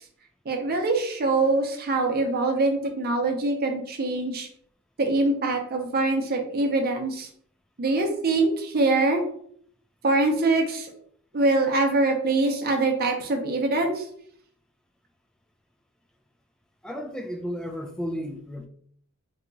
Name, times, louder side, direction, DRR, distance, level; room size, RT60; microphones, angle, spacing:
voice 1, 0.5-4.5 5.0-7.3 7.8-9.2 10.0-10.9 11.3-14.0, right 2 dB, 45° right, 3 dB, 0.7 m, -24 dB
voice 2, 16.8-18.7, equal, 5° left, 3 dB, 0.3 m, -33 dB
2.8 x 2.4 x 3.8 m, 0.63 s
head